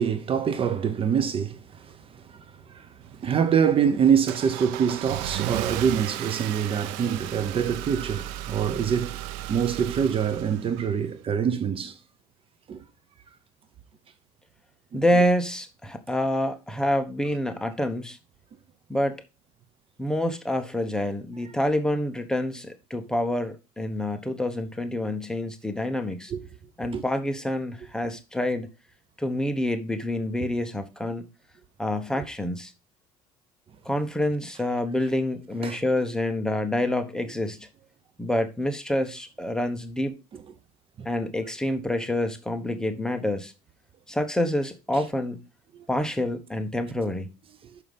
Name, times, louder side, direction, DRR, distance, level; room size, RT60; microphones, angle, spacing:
voice 1, 0.0-2.2 2.7-2.9 3.1-9.2 9.5-11.9 12.7-12.8 14.9-15.0 26.3-26.4 26.9-27.0 35.6-35.8 41.0-41.1 45.7-45.8, right 7 dB, 40° right, 1.0 m, -25 dB
Car / Engine starting, 3.0-11.2, right 14 dB, 85° right, 0.6 m, -35 dB
voice 2, 14.9-18.2 18.9-19.2 20.0-26.3 26.8-28.7 29.2-31.3 31.8-32.7 33.8-37.7 38.2-40.2 41.0-43.5 44.1-45.4 45.9-47.3, left 1 dB, 5° left, 1.1 m, -27 dB
6.3 x 5.7 x 5.3 m
supercardioid pair, 100°, 14 cm